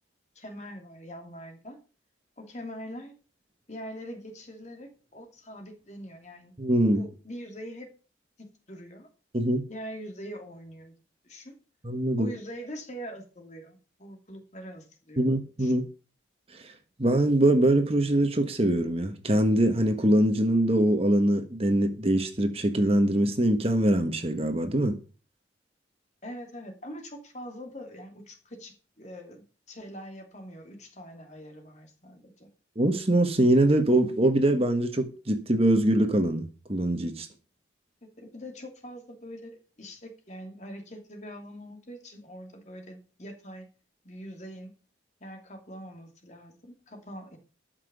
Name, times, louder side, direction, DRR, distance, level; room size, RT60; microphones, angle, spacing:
voice 1, 0.3-1.8 2.4-3.1 3.7-6.5 6.9-7.9 8.4-9.1 9.7-10.9 11.2-11.6 12.2-15.3 15.6-15.7 26.2-32.5 38.2-43.7 44.0-44.7 45.2-47.4, equal, 40° left, 2.8 m, -43 dB
voice 2, 6.6-7.0 9.3-9.7 11.8-12.3 15.2-15.8 16.6-16.7 17.0-25.0 32.8-37.3, right 1 dB, 30° right, 1.4 m, -23 dB
13.0 x 6.0 x 6.8 m
head